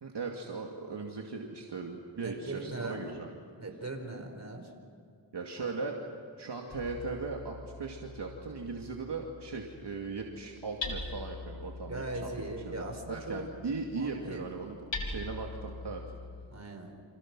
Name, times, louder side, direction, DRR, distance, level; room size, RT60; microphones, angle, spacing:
voice 1, 0.0-3.3 5.3-5.9 6.4-12.3 12.7-14.8 15.0-16.0, right 4 dB, 65° right, 1 dB, 2.5 m, -38 dB
voice 2, 2.2-3.1 3.6-4.7 5.6-5.7 11.8-13.4 13.9-14.4 16.5-16.9, right 2 dB, 35° right, 3 dB, 5.0 m, -40 dB
Hammer, 6.7-16.5, left 3 dB, 80° left, 4.0 m, -43 dB
29.5 x 27.5 x 6.2 m, 2.3 s
wide cardioid pair, 85°, 44 cm